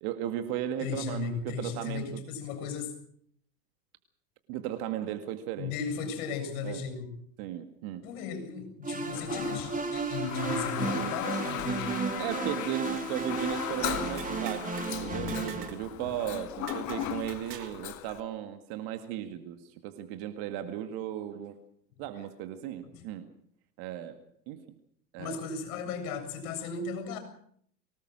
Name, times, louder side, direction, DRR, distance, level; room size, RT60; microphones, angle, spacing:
voice 1, 0.0-2.2 4.5-5.7 6.6-6.8 7.4-8.0 12.2-21.6 22.0-23.3 23.8-24.2 24.5-24.6 25.1-25.4, right 11 dB, 50° right, 8 dB, 2.1 m, -36 dB
voice 2, 0.8-3.0 5.6-7.1 8.0-12.0 22.8-23.0 25.2-27.2, left 6 dB, 60° left, 7 dB, 7.5 m, -36 dB
sound 1, 8.8-15.7, right 4 dB, 15° right, 3.2 m, -34 dB
Toilet flush, 9.1-18.2, left 12 dB, 35° left, 1.7 m, -37 dB
sound 2, 13.9-14.9 15.3-15.8 16.1-16.2 16.7-17.8, right 10 dB, 75° right, 2.2 m, -45 dB
24.5 x 19.0 x 6.4 m, 0.64 s
hypercardioid pair, 95°, 48 cm